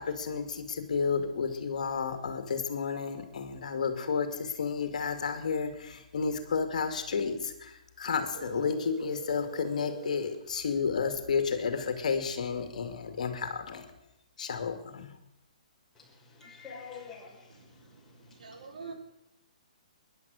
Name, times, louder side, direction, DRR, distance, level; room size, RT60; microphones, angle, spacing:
voice 1, 0.0-13.9 14.4-15.1, left 5 dB, 70° left, 8 dB, 2.2 m, -31 dB
sound 1, 8.3-10.4, right 9 dB, 55° right, 3.6 m, -43 dB
voice 2, 15.9-18.7, left 5 dB, 10° left, -4 dB, 6.0 m, -49 dB
voice 3, 17.5-18.9, right 4 dB, 75° right, 4 dB, 3.2 m, -47 dB
20.5 x 11.0 x 6.4 m, 0.90 s
hypercardioid pair, 135°, 4 cm